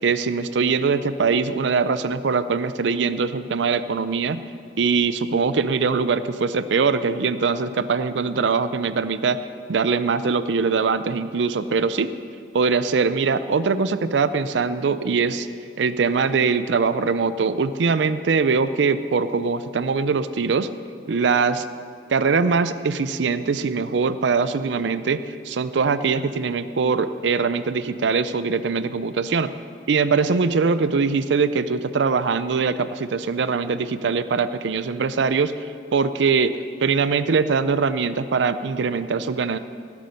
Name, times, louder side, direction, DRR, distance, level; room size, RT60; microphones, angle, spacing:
voice 1, 0.0-4.4 4.8-9.4 9.7-12.1 12.5-15.5 15.8-20.7 21.1-21.7 22.1-29.5 29.9-35.5 35.9-36.5 36.8-39.6, right 5 dB, 85° right, 13 dB, 0.5 m, -22 dB
18.5 x 8.4 x 5.3 m, 2.4 s
head